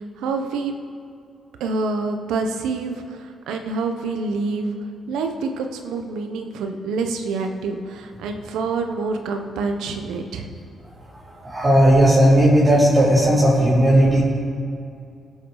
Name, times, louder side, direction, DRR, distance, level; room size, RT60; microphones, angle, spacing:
voice 1, 0.2-0.8 1.6-4.7 5.1-10.5, right 4 dB, 90° right, 5 dB, 1.0 m, -27 dB
voice 2, 11.4-14.2, equal, 30° right, -8 dB, 3.2 m, -15 dB
17.0 x 7.7 x 4.0 m, 2.4 s
cardioid pair, 70°, 0 cm